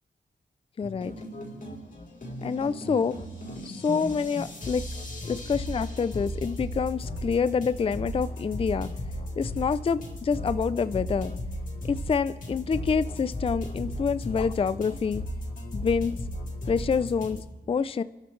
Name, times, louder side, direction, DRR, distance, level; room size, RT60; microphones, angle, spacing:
sound 1, 0.8-17.4, left 1 dB, 45° left, 4.1 m, -35 dB
voice 1, 0.8-1.1 2.4-3.2 3.6-4.8 5.2-8.9 9.4-11.3 11.9-15.2 15.7-16.2 16.7-18.0, left 5 dB, 30° left, 15 dB, 0.4 m, -27 dB
28.0 x 12.5 x 3.2 m, 1.1 s
wide cardioid pair, 125°, 19 cm